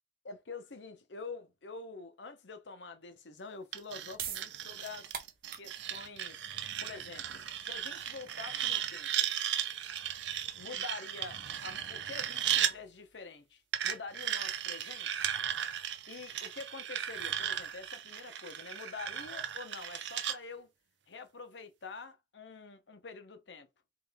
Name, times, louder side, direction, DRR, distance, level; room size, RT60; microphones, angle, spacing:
voice 1, 0.2-5.1 5.5-6.5 6.8-9.1 10.6-15.3 16.1-20.7 21.1-23.7, left 4 dB, 90° left, 0.9 m, -46 dB
sound 1, 3.7-10.5, right 8 dB, 55° right, 0.8 m, -46 dB
sound 2, 3.7-12.7 13.7-20.4, right 10 dB, 90° right, 0.6 m, -36 dB
3.8 x 3.2 x 3.6 m
head